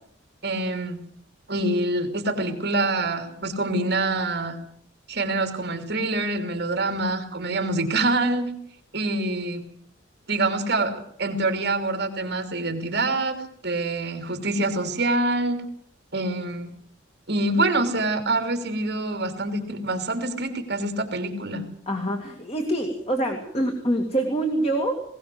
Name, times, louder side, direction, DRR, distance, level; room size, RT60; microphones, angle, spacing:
voice 1, 0.4-1.0 1.5-4.6 5.1-8.5 8.9-9.7 10.3-15.6 16.1-16.7 17.3-21.6, right 2 dB, 55° right, 6 dB, 3.1 m, -26 dB
voice 2, 21.9-25.0, right 1 dB, 30° left, 3 dB, 2.4 m, -25 dB
20.0 x 18.5 x 7.8 m, 0.64 s
head